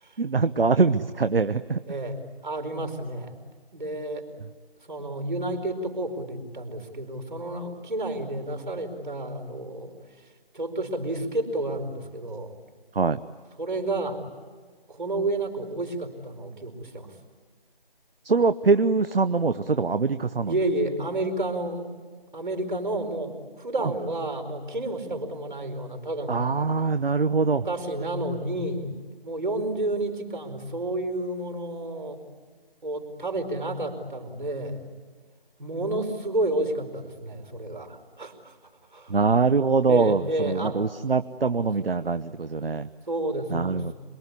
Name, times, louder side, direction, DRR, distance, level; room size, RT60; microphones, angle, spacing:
voice 1, 0.2-1.8 4.4-4.5 12.9-13.2 18.2-20.6 23.8-23.9 26.3-27.7 39.1-42.9 43.5-43.9, right 4 dB, 70° right, 12 dB, 1.0 m, -23 dB
voice 2, 1.9-3.4 3.7-4.3 4.9-9.9 10.5-12.5 13.6-14.2 14.9-17.1 20.5-21.9 22.3-26.5 27.5-28.9 29.2-32.2 32.8-34.8 35.6-38.5 38.9-39.1 39.9-40.8 43.1-43.8, right 2 dB, 55° right, 6 dB, 4.9 m, -30 dB
27.0 x 22.5 x 9.8 m, 1.5 s
figure-of-eight pair, 180°, 30 cm